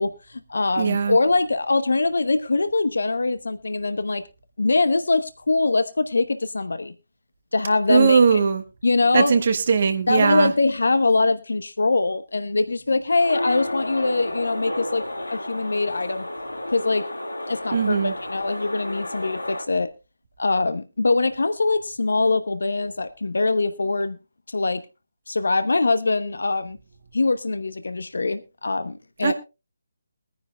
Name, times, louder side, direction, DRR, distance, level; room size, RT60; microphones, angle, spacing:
voice 1, 0.0-4.2 4.6-6.9 7.5-8.4 8.8-9.3 10.1-15.0 15.3-16.3 16.7-17.1 17.5-19.9 20.4-24.2 24.5-24.8 25.3-26.8 27.1-29.3, left 3 dB, 70° left, 0.9 m, -23 dB
voice 2, 0.8-1.2 7.9-8.6 9.1-10.5 17.7-18.1 29.2-29.3, right 6 dB, 45° right, 1.4 m, -19 dB
sound 1, 13.2-19.6, left 1 dB, 85° left, 1.8 m, -32 dB
22.0 x 10.0 x 2.2 m
figure-of-eight pair, 150°, 0 cm